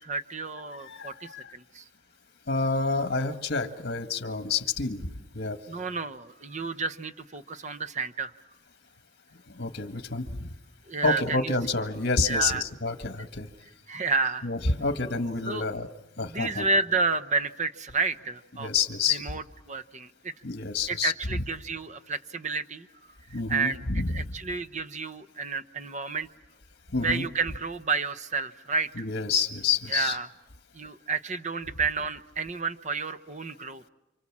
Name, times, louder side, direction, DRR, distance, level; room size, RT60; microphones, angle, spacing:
voice 1, 0.0-1.8 5.7-8.3 10.9-11.5 12.3-12.6 13.9-14.5 15.5-15.6 16.2-18.7 19.1-20.3 20.9-22.9 23.5-23.8 24.1-26.3 27.0-29.0 29.9-30.3 30.7-33.9, right 4 dB, 40° right, 12 dB, 0.9 m, -30 dB
voice 2, 0.8-1.5 2.5-5.1 5.3-5.6 9.5-10.5 11.0-13.5 14.4-15.9 16.2-16.7 18.6-19.4 20.4-21.1 23.3-24.3 26.9-27.3 28.9-30.2, left 4 dB, 55° left, 8 dB, 1.7 m, -28 dB
28.5 x 26.5 x 7.4 m, 1.0 s
head